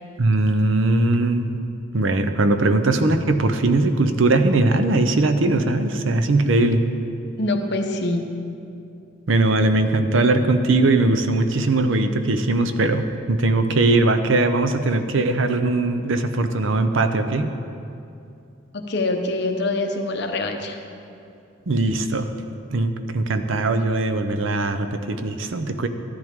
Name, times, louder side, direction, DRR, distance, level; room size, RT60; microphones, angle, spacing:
voice 1, 0.2-1.6 1.9-6.8 9.3-17.5 21.7-22.3 22.7-25.9, right 2 dB, 70° right, 8 dB, 0.7 m, -20 dB
voice 2, 7.4-8.2 18.7-20.8, left 2 dB, 55° left, 4 dB, 0.9 m, -24 dB
13.0 x 11.0 x 3.6 m, 2.6 s
head